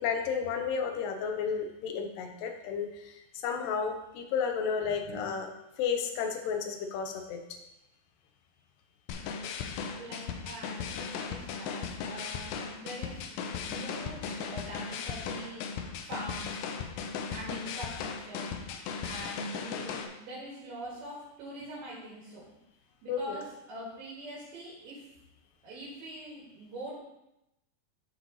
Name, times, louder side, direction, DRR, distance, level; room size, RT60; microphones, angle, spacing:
voice 1, 0.0-5.5 5.8-7.4 23.1-23.4, left 6 dB, 70° left, 3 dB, 2.2 m, -32 dB
sound 1, 9.1-20.1, left 6 dB, 85° left, 2.8 m, -37 dB
voice 2, 9.9-15.6 16.0-16.8 17.3-18.5 19.0-22.4 23.0-25.0 25.6-27.0, right 1 dB, 70° right, -8 dB, 3.7 m, -43 dB
11.5 x 4.5 x 4.1 m, 0.88 s
omnidirectional pair, 4.7 m